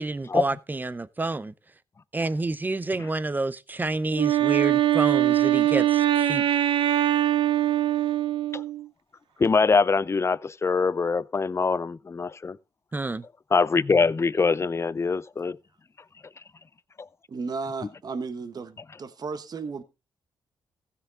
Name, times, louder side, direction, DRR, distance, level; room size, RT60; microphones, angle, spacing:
voice 1, 0.0-1.5 2.1-6.4 12.9-13.2, right 2 dB, 20° right, 0.6 m, -29 dB
Wind instrument woodwind instrument, 4.1-8.9, right 12 dB, 70° right, 0.7 m, -22 dB
voice 2, 9.4-12.6 13.5-15.6 17.0-17.1, left 4 dB, 30° left, 0.5 m, -23 dB
voice 3, 17.3-19.8, right 4 dB, 45° right, 1.2 m, -34 dB
15.5 x 6.9 x 3.6 m
cardioid pair, 75°, 9 cm